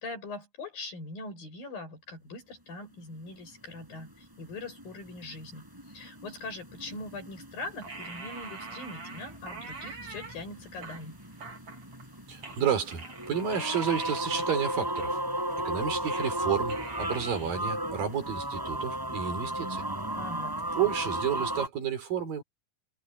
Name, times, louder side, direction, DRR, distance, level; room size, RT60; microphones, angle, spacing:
voice 1, 0.0-11.2 20.2-20.6, left 2 dB, 75° left, 9.2 m, -42 dB
sound 1, 4.6-4.8 5.2-5.3 5.5-21.7, right 1 dB, 5° right, 7.0 m, -34 dB
sound 2, 7.8-10.4 10.8-12.1 12.4-16.4 16.7-17.5, right 4 dB, 40° right, 4.3 m, -44 dB
voice 2, 12.3-15.2 15.7-19.8 20.8-22.4, right 8 dB, 75° right, 5.8 m, -31 dB
omnidirectional pair, 4.1 m